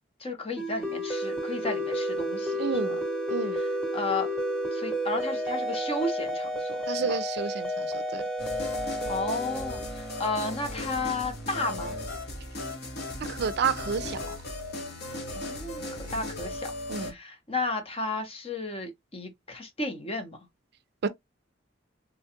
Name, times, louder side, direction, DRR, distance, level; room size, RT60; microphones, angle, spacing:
voice 1, 0.2-2.6 3.9-4.3 4.7-7.2 9.1-12.0 15.3-16.7 17.0-20.4, left 2 dB, 30° left, 0.8 m, -33 dB
sound 1, 0.6-10.9, equal, 5° left, 1.0 m, -31 dB
voice 2, 2.6-3.0 3.3-3.6 6.9-8.2 13.2-14.4 16.9-17.1 21.0-21.1, right 6 dB, 60° right, 0.4 m, -30 dB
sound 2, 8.4-17.1, left 1 dB, 60° left, 1.3 m, -37 dB
3.7 x 2.3 x 2.8 m
head